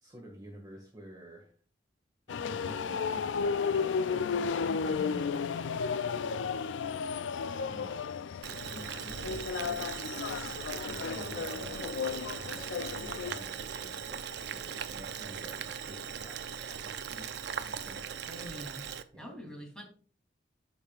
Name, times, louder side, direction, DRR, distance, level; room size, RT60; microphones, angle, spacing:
voice 1, 0.0-1.5 2.3-4.5 4.8-5.9 7.7-8.1 8.4-10.1 10.9-18.0 19.1-19.4, equal, 20° right, 1.8 m, -50 dB
sound 1, 2.3-13.4, left 5 dB, 90° left, 0.4 m, -33 dB
voice 2, 4.9-5.4 18.2-18.9 19.2-19.8, equal, 5° left, 3.1 m, -44 dB
Boiling, 8.4-19.0, right 7 dB, 65° right, 0.6 m, -39 dB
13.5 x 5.4 x 2.4 m
head